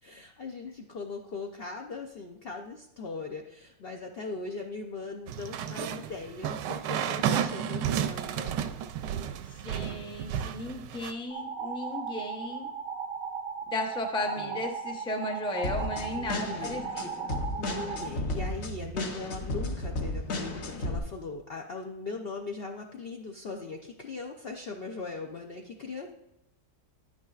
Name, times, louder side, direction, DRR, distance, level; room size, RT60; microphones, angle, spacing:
voice 1, 0.0-8.5 14.4-14.6 16.1-16.9 17.5-26.1, left 3 dB, 85° left, 2 dB, 0.5 m, -39 dB
sound 1, 5.3-11.1, right 9 dB, 85° right, 1.2 m, -32 dB
voice 2, 9.4-12.7 13.7-17.3, left 2 dB, 5° left, 2 dB, 0.4 m, -35 dB
sound 2, 11.3-18.1, right 6 dB, 65° right, 0.8 m, -37 dB
sound 3, 15.6-21.0, left 2 dB, 50° left, 1.0 m, -34 dB
10.0 x 9.6 x 2.4 m, 0.86 s
omnidirectional pair, 1.8 m